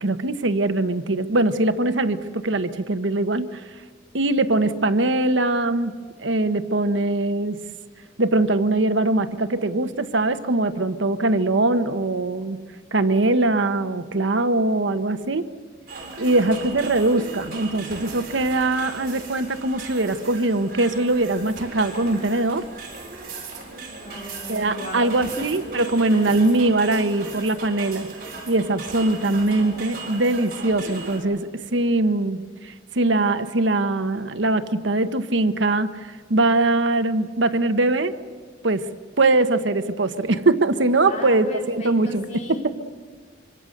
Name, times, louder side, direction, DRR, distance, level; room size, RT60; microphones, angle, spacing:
voice 1, 0.0-3.6 4.1-7.6 8.2-12.6 12.9-15.5 16.2-22.7 24.5-28.1 28.5-38.1 38.6-38.8 39.2-42.2, right 2 dB, 80° right, 10 dB, 1.1 m, -22 dB
sound 1, 15.9-31.2, right 3 dB, 50° right, 6.9 m, -37 dB
voice 2, 24.0-25.6 26.1-26.3 41.1-42.7, left 1 dB, 40° left, 0 dB, 3.9 m, -36 dB
26.0 x 24.5 x 6.6 m, 1.5 s
head